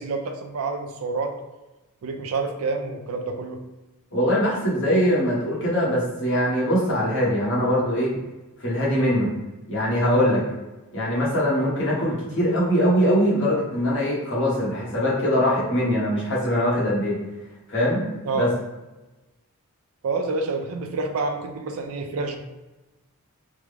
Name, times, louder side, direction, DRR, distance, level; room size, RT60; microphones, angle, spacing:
voice 1, 0.0-1.3 2.0-3.6 10.1-10.4 18.2-18.5 20.0-22.4, right 3 dB, 70° right, 5 dB, 0.4 m, -28 dB
voice 2, 4.1-8.1 8.6-9.3 9.7-10.4 10.9-17.2 17.7-18.0 18.3-18.5, equal, 60° left, -6 dB, 1.2 m, -22 dB
3.5 x 2.0 x 3.1 m, 1.1 s
head